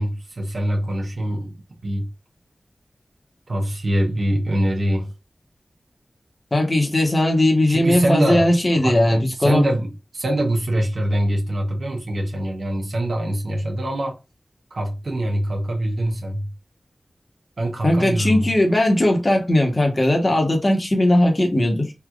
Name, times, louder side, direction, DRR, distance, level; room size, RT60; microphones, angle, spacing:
voice 1, 0.0-1.5 1.8-2.1 3.5-5.1 7.7-14.2 14.7-16.5 17.6-18.5, right 1 dB, 75° right, 0.9 m, -24 dB
voice 2, 6.5-9.6 17.8-21.9, left 1 dB, 40° left, 1.2 m, -18 dB
3.3 x 2.9 x 2.4 m
cardioid pair, 45°, 0 cm